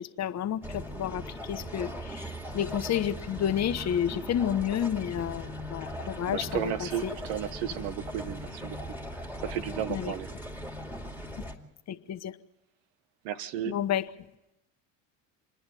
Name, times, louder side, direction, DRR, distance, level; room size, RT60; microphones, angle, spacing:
voice 1, 0.0-7.1 9.9-10.1 11.9-12.4 13.7-14.0, left 10 dB, 45° left, 11 dB, 1.1 m, -31 dB
sound 1, 0.6-11.6, equal, 5° right, 2.5 m, -39 dB
voice 2, 6.3-10.3 13.2-13.7, right 10 dB, 80° right, 13 dB, 1.2 m, -34 dB
27.5 x 10.5 x 9.2 m, 0.92 s
supercardioid pair, 85°, 38 cm